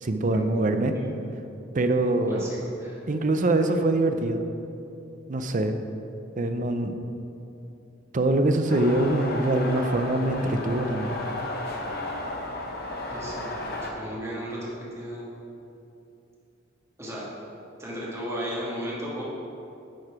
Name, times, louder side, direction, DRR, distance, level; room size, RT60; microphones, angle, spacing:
voice 1, 0.0-0.9 1.7-2.5 3.1-4.5 5.3-5.8 6.4-6.9 8.1-11.2, right 2 dB, 40° right, 7 dB, 0.5 m, -24 dB
voice 2, 2.3-3.1 13.1-13.5 13.8-15.3 17.0-17.3 17.8-19.2, equal, 15° right, -6 dB, 1.8 m, -35 dB
sound 1, 8.7-13.9, left 2 dB, 50° left, 0.9 m, -33 dB
10.5 x 4.7 x 4.8 m, 2.8 s
head